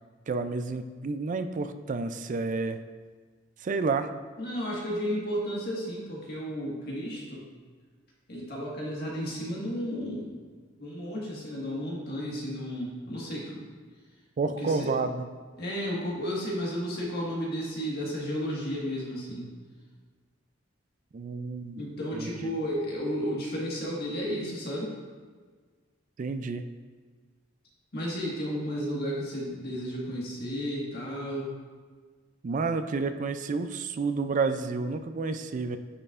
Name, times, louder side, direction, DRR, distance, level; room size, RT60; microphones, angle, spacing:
voice 1, 0.3-2.8 3.6-4.1 14.4-15.3 21.1-21.8 22.1-22.5 26.2-26.7 32.4-35.8, right 4 dB, 40° right, 9 dB, 0.3 m, -30 dB
voice 2, 4.4-7.4 8.3-10.4 10.8-13.6 14.6-14.9 15.6-19.5 21.8-24.9 27.9-31.5, equal, 55° left, -4 dB, 1.6 m, -33 dB
9.6 x 5.4 x 2.5 m, 1.5 s
head